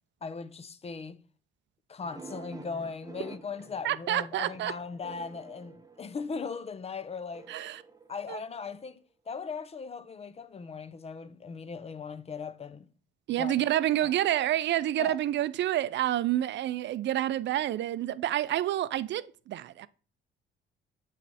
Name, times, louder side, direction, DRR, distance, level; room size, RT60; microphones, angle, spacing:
voice 1, 0.2-1.2 1.9-7.5 8.1-12.9 13.4-13.5 14.0-14.2 15.0-15.2, left 5 dB, 30° left, 0.5 m, -39 dB
sound 1, 2.0-6.6 7.3-8.9, right 4 dB, 20° right, 0.7 m, -49 dB
voice 2, 3.8-4.7 7.5-7.8 8.3-8.4 13.3-19.9, right 13 dB, 65° right, 0.4 m, -28 dB
8.5 x 3.3 x 4.1 m
cardioid pair, 90°, 20 cm